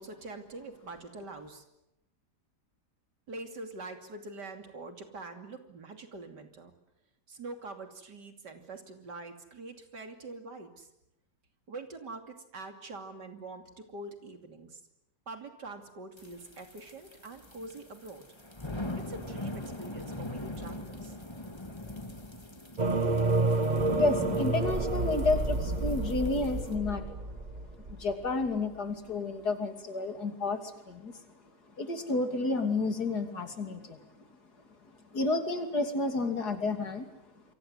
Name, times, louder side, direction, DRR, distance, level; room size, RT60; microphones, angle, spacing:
voice 1, 0.0-1.6 3.3-6.7 7.3-10.9 11.7-14.8 15.3-18.3 19.1-21.2, right 3 dB, 80° right, 6 dB, 3.4 m, -44 dB
sound 1, 16.2-26.7, left 1 dB, 15° left, 2.0 m, -41 dB
sound 2, 22.8-28.5, right 2 dB, 30° right, 1.1 m, -30 dB
voice 2, 23.9-27.2 27.9-31.2 31.8-34.1 35.1-37.1, left 3 dB, 65° left, 6 dB, 3.4 m, -31 dB
28.5 x 23.5 x 8.1 m, 0.88 s
omnidirectional pair, 1.8 m